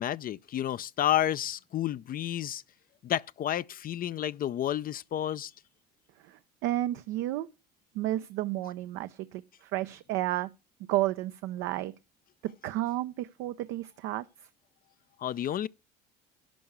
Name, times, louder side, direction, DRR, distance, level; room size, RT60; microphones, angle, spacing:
voice 1, 0.0-2.6 3.0-5.5 15.2-15.7, left 11 dB, 45° left, 0.4 m, -30 dB
voice 2, 6.2-7.5 7.9-10.5 10.9-11.9 12.4-14.5, right 15 dB, 70° right, 0.6 m, -32 dB
11.5 x 4.6 x 7.9 m
hypercardioid pair, 60°, 21 cm